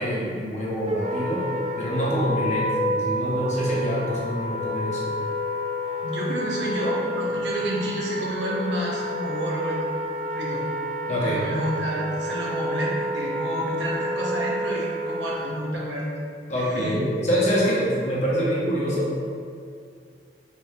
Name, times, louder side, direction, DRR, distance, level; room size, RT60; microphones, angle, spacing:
voice 1, 0.0-1.4 1.8-5.1 11.1-11.4 16.5-19.1, equal, 40° left, -6 dB, 0.9 m, -25 dB
Wind instrument woodwind instrument, 0.9-15.7, equal, 35° right, 0.4 m, -29 dB
voice 2, 6.0-9.8 10.3-10.6 11.2-16.1 16.6-17.0, right 1 dB, 80° right, -5 dB, 0.9 m, -29 dB
4.0 x 3.5 x 2.7 m, 2.3 s
head